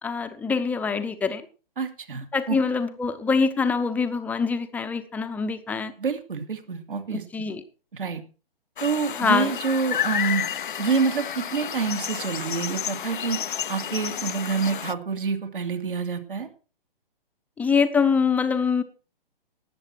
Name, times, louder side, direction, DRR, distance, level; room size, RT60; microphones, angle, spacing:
voice 1, 0.0-1.4 2.3-5.9 7.1-7.6 9.1-9.5 17.6-18.8, left 5 dB, 5° left, 9 dB, 0.8 m, -24 dB
voice 2, 1.8-2.6 6.0-7.2 7.9-8.2 8.8-10.4 10.8-13.4 13.7-16.5, right 5 dB, 65° right, 6 dB, 2.5 m, -27 dB
sound 1, 8.8-14.9, left 9 dB, 60° left, 0.6 m, -31 dB
18.5 x 7.5 x 4.5 m, 0.35 s
figure-of-eight pair, 125°, 29 cm